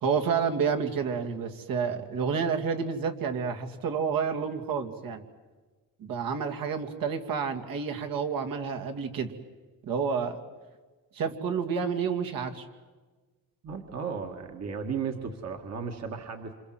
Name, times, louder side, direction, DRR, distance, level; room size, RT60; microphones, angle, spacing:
voice 1, 0.0-5.2 6.0-9.3 9.8-10.4 11.1-12.7, right 6 dB, 70° right, 5 dB, 2.6 m, -29 dB
voice 2, 13.6-16.5, right 6 dB, 45° right, 4 dB, 2.0 m, -35 dB
28.0 x 27.0 x 7.8 m, 1.3 s
cardioid pair, 145°, 36 cm